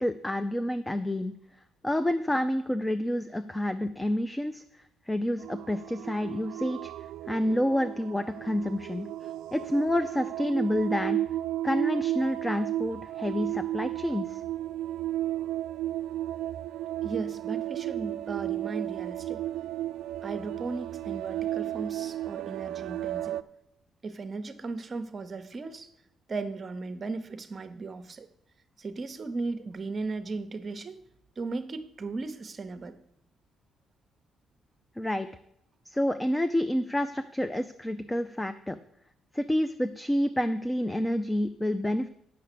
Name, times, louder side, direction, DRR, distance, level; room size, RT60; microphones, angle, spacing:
voice 1, 0.0-1.3 1.8-4.6 5.1-6.9 7.3-9.1 9.5-11.2 11.6-14.4 35.0-35.3 35.9-38.8 39.3-42.1, left 1 dB, 10° left, 10 dB, 0.5 m, -28 dB
sound 1, 5.4-23.4, right 13 dB, 90° right, 0.3 m, -34 dB
voice 2, 17.0-19.4 20.2-23.4 24.0-25.9 26.3-28.3 28.8-31.0 31.4-33.0, right 3 dB, 40° right, 10 dB, 0.9 m, -36 dB
8.6 x 6.7 x 6.7 m, 0.76 s
cardioid pair, 90°, 0 cm